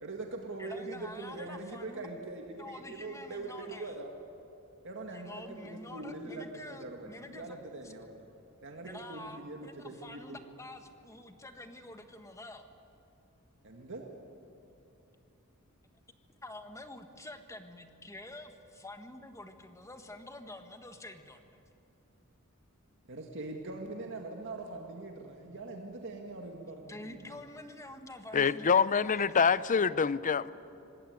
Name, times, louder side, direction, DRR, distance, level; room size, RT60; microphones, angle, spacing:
voice 1, 0.0-4.1 4.8-8.3 8.6-10.4 13.6-14.1 23.1-27.4, right 2 dB, 60° right, 1 dB, 1.9 m, -42 dB
voice 2, 0.6-2.1 2.6-3.8 5.1-7.6 8.8-9.7 10.0-12.6 16.4-21.4 26.9-28.8, left 2 dB, 15° left, 6 dB, 1.6 m, -47 dB
voice 3, 28.3-30.5, left 6 dB, 35° left, 17 dB, 0.6 m, -26 dB
25.5 x 20.0 x 9.4 m, 2.8 s
head